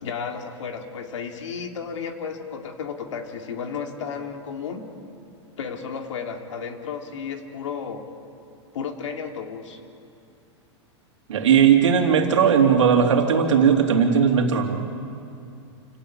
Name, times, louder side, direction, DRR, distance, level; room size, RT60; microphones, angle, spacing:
voice 1, 0.0-4.9 5.6-8.0 8.7-9.8, left 6 dB, 85° left, 4 dB, 2.7 m, -33 dB
voice 2, 11.3-14.9, right 7 dB, 90° right, 3 dB, 3.0 m, -18 dB
28.0 x 17.0 x 8.7 m, 2.5 s
hypercardioid pair, 125°, 15 cm